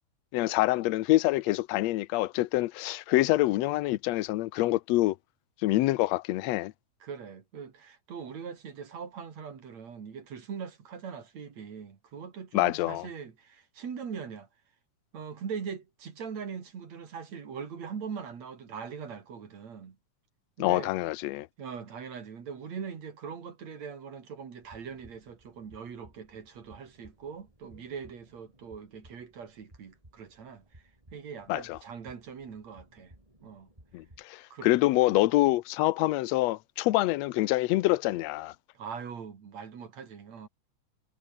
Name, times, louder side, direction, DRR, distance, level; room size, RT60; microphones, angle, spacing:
voice 1, 0.3-5.2 5.6-6.7 12.5-13.1 20.6-21.5 31.5-31.8 33.9-38.5, left 18 dB, 75° left, 1.7 m, -26 dB
voice 2, 7.0-14.5 15.1-20.0 20.6-20.9 21.6-30.8 31.1-33.1 33.4-33.7 34.5-34.7 38.7-40.5, right 6 dB, 60° right, 3.9 m, -41 dB
sound 1, 24.6-34.2, right 1 dB, 10° right, 5.6 m, -58 dB
omnidirectional pair, 3.6 m